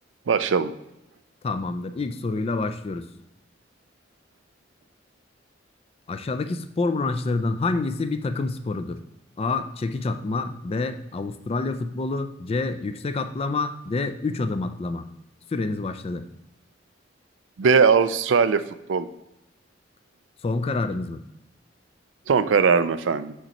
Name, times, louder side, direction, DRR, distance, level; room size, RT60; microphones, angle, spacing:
voice 1, 0.3-0.7 17.6-18.6 18.9-19.1 22.3-23.3, right 5 dB, 80° right, 13 dB, 0.4 m, -19 dB
voice 2, 1.4-3.1 6.1-9.0 9.4-15.1 15.5-16.2 20.4-21.2, left 3 dB, 30° left, 9 dB, 0.4 m, -27 dB
6.5 x 5.4 x 3.0 m, 0.88 s
head